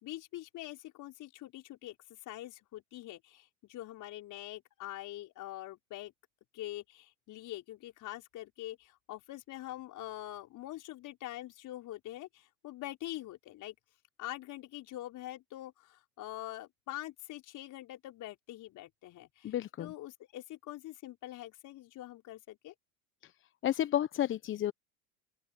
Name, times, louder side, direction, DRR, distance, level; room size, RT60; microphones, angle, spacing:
voice 1, 0.0-1.9 2.2-6.1 6.5-13.7 14.2-22.7, left 15 dB, 45° left, 5.0 m, -44 dB
voice 2, 19.4-19.9 23.2-23.3 23.6-24.7, left 11 dB, 30° left, 0.9 m, -31 dB
open air
hypercardioid pair, 90°, 43 cm